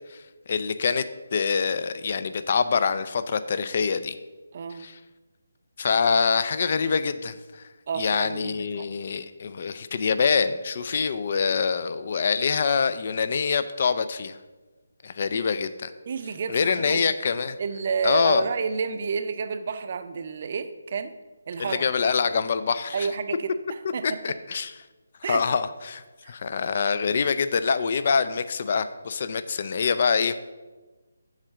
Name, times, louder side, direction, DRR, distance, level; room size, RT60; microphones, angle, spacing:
voice 1, 0.1-1.0 1.3-4.2 4.7-5.0 5.8-7.6 7.9-14.4 15.0-15.9 16.5-17.6 18.0-18.4 21.6-23.1 24.0-24.7 25.3-30.3, left 5 dB, 45° left, 12 dB, 0.4 m, -25 dB
voice 2, 4.5-4.8 7.9-8.9 16.1-17.1 17.6-21.1 21.5-21.9 22.9-24.1 25.2-25.4 26.2-26.3, right 5 dB, 45° right, 10 dB, 0.5 m, -30 dB
7.3 x 3.8 x 6.4 m, 1.2 s
figure-of-eight pair, 150°, 0 cm